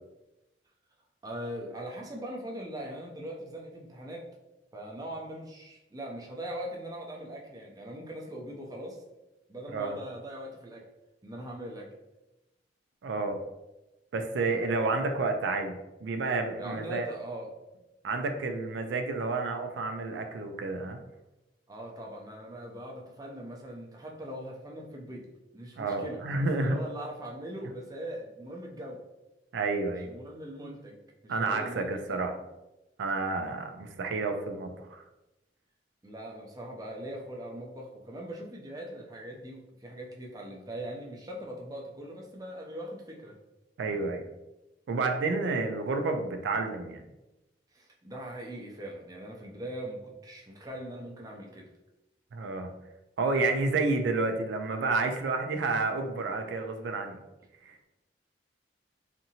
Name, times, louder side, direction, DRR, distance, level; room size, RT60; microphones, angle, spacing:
voice 1, 1.2-4.3 4.7-9.0 9.5-10.8 11.2-12.0 16.6-17.6 21.7-25.3 25.5-29.0 30.0-32.2 36.0-43.4 47.7-51.7, right 1 dB, 20° right, -1 dB, 0.4 m, -41 dB
voice 2, 13.0-13.4 14.1-17.1 18.0-21.0 25.8-26.8 29.5-30.1 31.3-32.3 33.0-35.0 43.8-44.3 44.9-47.0 52.3-52.7 53.2-57.2 57.6-57.8, right 3 dB, 85° right, 6 dB, 0.3 m, -30 dB
2.7 x 2.5 x 2.7 m, 0.99 s
head